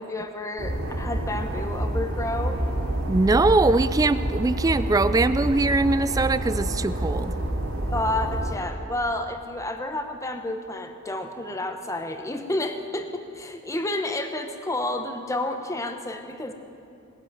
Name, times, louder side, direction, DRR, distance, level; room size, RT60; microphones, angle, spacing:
voice 1, 0.0-2.6 7.9-16.5, left 1 dB, 15° left, 6 dB, 0.9 m, -30 dB
sound 1, 0.6-8.6, right 1 dB, 90° right, 3.0 m, -28 dB
voice 2, 3.1-7.3, right 3 dB, 15° right, 14 dB, 0.3 m, -22 dB
19.0 x 7.6 x 9.1 m, 2.7 s
head